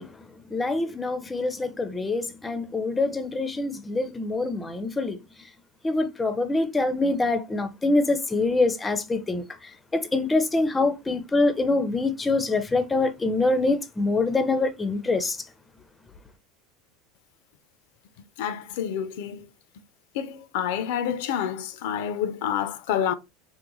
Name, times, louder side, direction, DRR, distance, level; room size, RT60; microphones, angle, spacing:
voice 1, 0.0-5.2 5.8-15.5, left 2 dB, 10° left, 0.4 m, -25 dB
voice 2, 18.4-19.5 20.1-23.1, left 9 dB, 75° left, 0.4 m, -28 dB
3.8 x 2.1 x 2.9 m
supercardioid pair, 135°, 0 cm